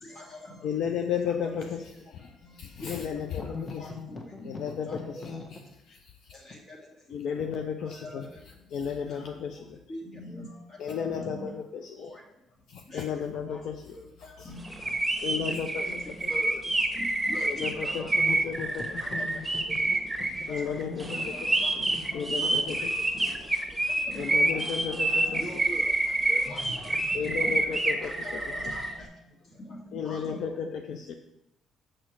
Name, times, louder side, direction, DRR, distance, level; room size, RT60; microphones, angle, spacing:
voice 1, 0.0-0.7 1.1-1.6 2.8-4.3 4.9-5.2 6.4-6.9 7.8-8.3 9.1-9.3 9.9-10.6 10.9-11.5 12.0-12.2 12.9-13.1 13.5-13.6 14.2-14.7 15.3-16.6 17.0-18.2 19.2-19.4 20.5-22.0 22.4-22.5 23.1-23.4 24.1-24.3 25.3-25.9 26.3-27.6 28.0-29.1 29.6-29.8 30.0-30.5, left 1 dB, 50° left, -1 dB, 2.3 m, -43 dB
voice 2, 0.6-2.3 2.6-3.9 4.4-5.6 5.9-6.1 7.1-8.3 8.7-9.8 10.8-12.1 12.7-13.9 14.2-14.5 15.2-15.8 16.2-16.3 17.5-18.0 18.4-19.0 20.5-21.2 22.1-22.9 23.2-23.3 24.2-25.4 27.1-28.4 29.9-31.1, left 7 dB, 70° left, 5 dB, 0.5 m, -33 dB
voice 3, 3.4-5.6 18.1-20.0 20.4-21.2 21.8-22.3 22.5-22.7, left 5 dB, 35° left, 2 dB, 1.4 m, -41 dB
sound 1, 14.6-28.9, right 2 dB, 10° right, 1.3 m, -28 dB
6.4 x 6.2 x 4.7 m, 0.87 s
supercardioid pair, 75°, 0 cm